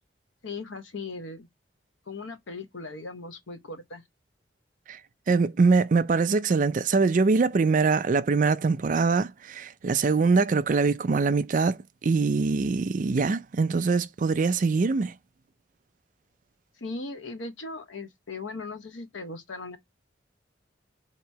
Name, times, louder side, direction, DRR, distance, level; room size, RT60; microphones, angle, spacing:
voice 1, 0.4-1.5 2.1-4.0 16.8-19.8, left 3 dB, 85° left, 0.8 m, -38 dB
voice 2, 5.3-15.1, right 4 dB, 45° right, 0.4 m, -23 dB
2.9 x 2.9 x 4.5 m
head